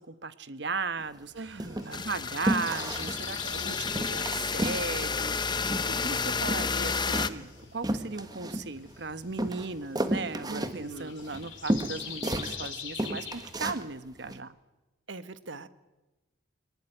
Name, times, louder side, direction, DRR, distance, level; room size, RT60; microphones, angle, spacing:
voice 1, 0.0-14.5, right 4 dB, 60° right, 13 dB, 1.1 m, -37 dB
sound 1, 1.0-1.2 1.6-2.1 2.5-3.2 3.5-3.6 3.9-4.9 5.1-6.1 6.4-9.0 9.4-12.7 13.0-13.8 14.3-14.4, right 1 dB, 20° right, 1.4 m, -32 dB
voice 2, 1.3-2.1 10.5-11.2 15.1-15.7, right 2 dB, 75° right, 13 dB, 1.3 m, -42 dB
sound 2, 1.4-13.7, left 7 dB, 80° left, 4.9 m, -44 dB
sound 3, 1.9-7.3, left 5 dB, 25° left, 0.7 m, -31 dB
23.0 x 19.0 x 10.0 m, 1.1 s
head